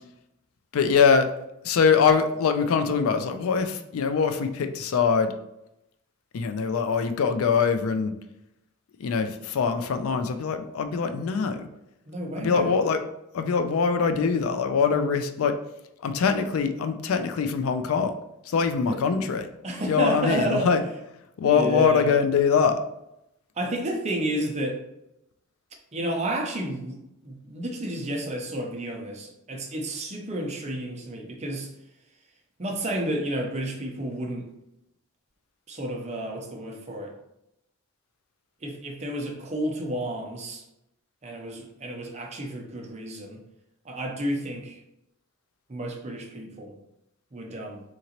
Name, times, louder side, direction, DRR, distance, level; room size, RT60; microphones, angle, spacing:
voice 1, 0.7-1.3 1.6-5.3 6.3-8.1 9.0-11.7 12.4-13.0 13.3-15.6 16.0-18.2 18.5-19.5 19.9-20.8 21.4-22.8, left 5 dB, 70° left, 8 dB, 0.3 m, -23 dB
voice 2, 12.1-12.7 18.9-19.0 19.6-20.7 21.5-22.1 23.6-24.8 25.9-31.7 32.6-34.5 35.7-37.1 38.6-40.6 41.2-43.4 43.8-44.8 45.7-46.8 47.3-47.8, right 1 dB, 30° right, 1 dB, 0.6 m, -31 dB
3.7 x 3.0 x 2.9 m, 0.85 s
head